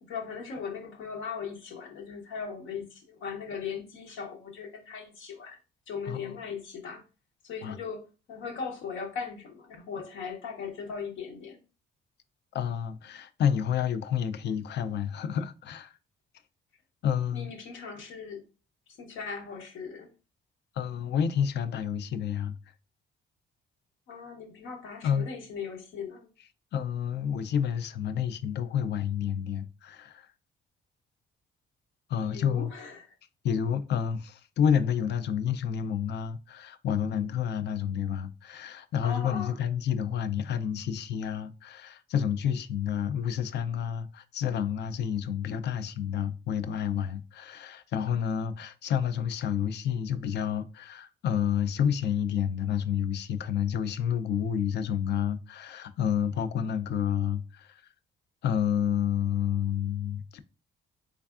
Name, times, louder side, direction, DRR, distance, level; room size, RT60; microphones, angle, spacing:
voice 1, 0.1-5.6 5.9-7.0 7.4-11.6 17.3-18.4 19.0-20.1 24.1-26.3 32.2-33.1 39.0-39.6, left 6 dB, 80° left, 0.9 m, -38 dB
voice 2, 12.5-15.9 17.0-17.5 20.8-22.5 25.0-25.3 26.7-30.3 32.1-32.7 33.4-57.8 58.4-60.4, left 8 dB, 60° left, 0.4 m, -29 dB
3.3 x 3.3 x 2.4 m
cardioid pair, 90°, 20 cm